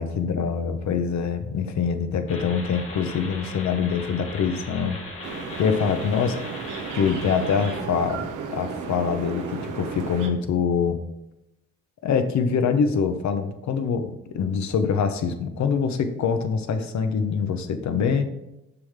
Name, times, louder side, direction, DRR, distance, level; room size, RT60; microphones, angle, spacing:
voice 1, 0.0-5.0 5.3-6.4 6.9-11.0 12.0-18.2, left 6 dB, 65° left, 8 dB, 0.8 m, -24 dB
sound 1, 2.3-7.8, left 2 dB, 85° left, 2.3 m, -38 dB
sound 2, 5.2-10.3, right 5 dB, 80° right, 1.0 m, -34 dB
6.8 x 5.6 x 3.5 m, 0.89 s
cardioid pair, 65°, 31 cm